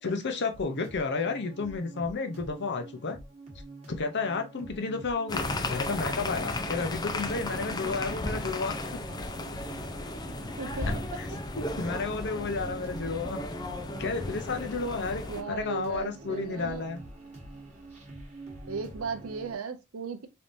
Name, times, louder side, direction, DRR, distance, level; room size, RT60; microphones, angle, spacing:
voice 1, 0.0-3.2 3.9-9.0 11.2-13.4 14.0-17.0, left 4 dB, 55° left, 0.7 m, -32 dB
sound 1, 0.5-19.6, right 2 dB, 35° right, 1.2 m, -45 dB
sound 2, 5.3-15.4, left 2 dB, 20° left, 0.4 m, -35 dB
voice 2, 15.3-16.8 18.7-20.3, right 5 dB, 75° right, 0.6 m, -36 dB
3.4 x 2.8 x 2.5 m
head